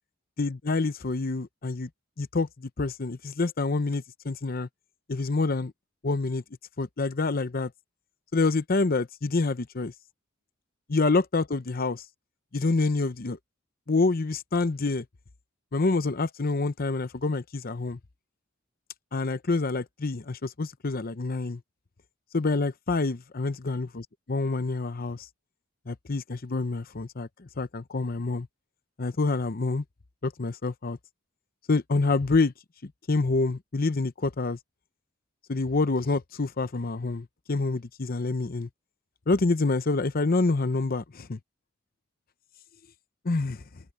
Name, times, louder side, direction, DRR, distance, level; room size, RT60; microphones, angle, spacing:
voice 1, 0.4-1.9 2.2-4.7 5.1-5.7 6.0-6.4 6.8-7.7 8.3-9.9 10.9-12.0 12.5-13.4 13.9-15.0 15.7-18.0 19.1-21.6 22.3-25.3 25.9-28.5 29.0-29.8 30.2-31.0 31.7-32.5 32.8-34.6 35.5-38.7 39.3-41.4 43.2-43.6, left 3 dB, 45° left, 0.8 m, -27 dB
head